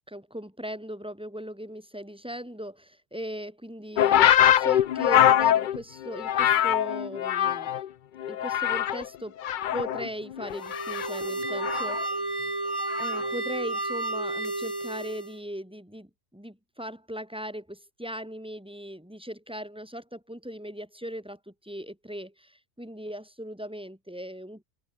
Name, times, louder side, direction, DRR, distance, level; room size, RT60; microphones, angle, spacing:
voice 1, 0.1-7.8 8.3-9.4 9.7-12.2 13.0-24.6, equal, 5° right, 3.8 m, -39 dB
sound 1, 4.0-7.9 8.2-9.1 9.4-12.1 12.9-13.3, left 11 dB, 70° left, 0.4 m, -23 dB
sound 2, 10.5-15.4, right 2 dB, 60° right, 5.9 m, -32 dB
omnidirectional pair, 1.4 m